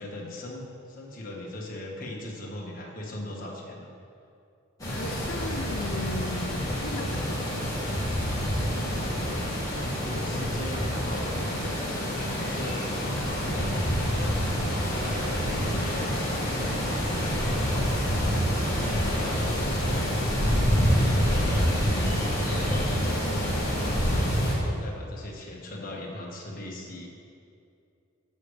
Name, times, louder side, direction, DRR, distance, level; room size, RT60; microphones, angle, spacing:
voice 1, 0.0-3.9 8.3-11.7 12.0-20.0 20.4-24.2 24.6-27.1, left 1 dB, 40° left, -2 dB, 1.5 m, -40 dB
sound 1, 4.8-24.5, equal, 15° left, 2.0 m, -27 dB
voice 2, 4.9-8.4, left 2 dB, 80° left, 3 dB, 0.6 m, -38 dB
14.5 x 6.3 x 3.3 m, 2.5 s
head